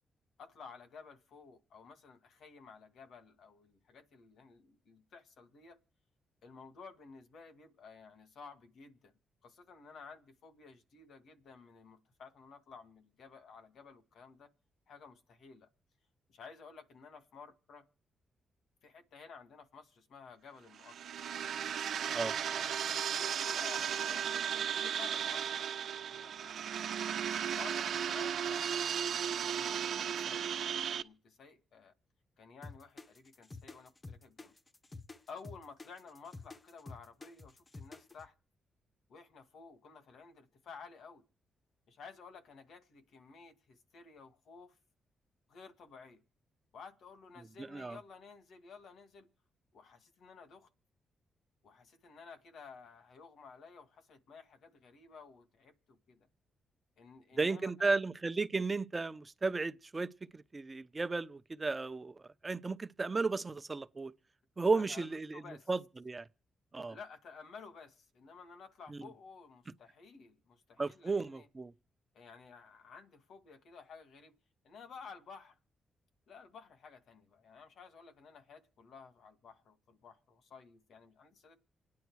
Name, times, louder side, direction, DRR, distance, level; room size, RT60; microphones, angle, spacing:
voice 1, 0.4-5.8 6.4-9.1 9.4-14.5 14.9-15.7 16.3-17.8 18.8-21.0 22.4-26.6 27.4-31.9 32.4-34.5 35.3-38.3 39.1-41.2 41.9-44.8 45.5-46.2 46.7-49.3 49.7-50.7 51.6-56.3 57.0-58.0 64.7-65.7 66.9-71.5 72.1-74.3 74.6-75.6 76.3-81.6, left 5 dB, 70° left, 2.0 m, -54 dB
sound 1, 20.7-31.0, right 8 dB, 70° right, 0.9 m, -35 dB
sound 2, 32.6-38.3, left 3 dB, 25° left, 0.8 m, -49 dB
voice 2, 47.6-48.0 57.4-64.1 64.6-66.3 66.7-67.0 68.9-69.0 70.8-71.7, right 3 dB, 30° right, 0.8 m, -34 dB
27.0 x 9.6 x 4.7 m
cardioid pair, 80°, 0 cm